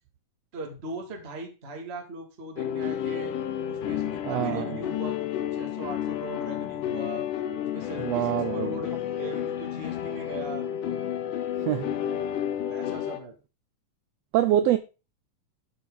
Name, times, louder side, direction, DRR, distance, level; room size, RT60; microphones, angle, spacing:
voice 1, 0.5-3.3 3.7-7.3 7.6-10.7 11.7-12.0 12.7-13.3, right 2 dB, 20° right, 2.0 m, -39 dB
sound 1, 2.6-13.2, left 10 dB, 90° left, 2.7 m, -31 dB
voice 2, 4.2-4.8 8.0-8.8 11.7-11.9 14.3-14.8, right 12 dB, 80° right, 1.5 m, -25 dB
12.5 x 7.4 x 3.9 m
omnidirectional pair, 3.6 m